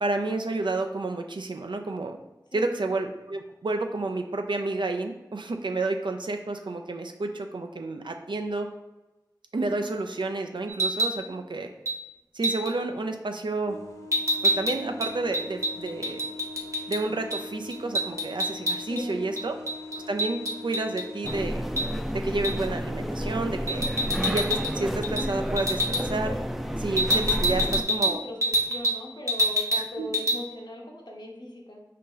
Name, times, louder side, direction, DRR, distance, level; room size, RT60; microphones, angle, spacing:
voice 1, 0.0-2.2 2.5-8.7 9.5-11.7 12.3-13.8 14.4-16.2 16.9-19.5 20.1-21.6 22.1-23.9 24.2-26.3 26.8-28.2 30.0-30.1, right 2 dB, 85° right, 4 dB, 0.4 m, -30 dB
sound 1, 10.7-11.2 11.9-12.0 12.4-12.7 14.1-17.0 17.3-17.4 17.7-19.0 19.4-21.3 21.8-21.9 22.4-22.7 23.7-24.7 25.0-25.3 25.6-26.0 27.0-29.0 29.3-29.9 30.1-30.4, equal, 40° right, 0.7 m, -27 dB
sound 2, 13.7-21.4, left 3 dB, 45° left, 0.8 m, -42 dB
voice 2, 18.9-19.3 27.6-28.4 28.6-31.8, left 1 dB, 75° left, -1 dB, 0.9 m, -39 dB
sound 3, 21.2-27.8, equal, 5° right, 0.4 m, -30 dB
5.0 x 2.8 x 3.8 m, 1.0 s
wide cardioid pair, 40°, 8 cm